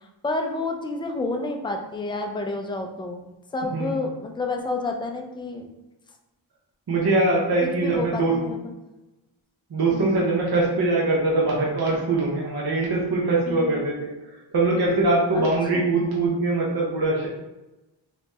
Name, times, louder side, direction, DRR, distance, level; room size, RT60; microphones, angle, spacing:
voice 1, 0.2-5.7 7.6-8.6 9.9-10.2 13.5-13.8 15.3-15.5, left 2 dB, 10° left, 3 dB, 0.4 m, -30 dB
voice 2, 6.9-8.3 9.7-14.1 14.5-17.3, right 2 dB, 50° right, -4 dB, 0.8 m, -22 dB
3.3 x 2.9 x 3.0 m, 1.0 s
wide cardioid pair, 70°, 48 cm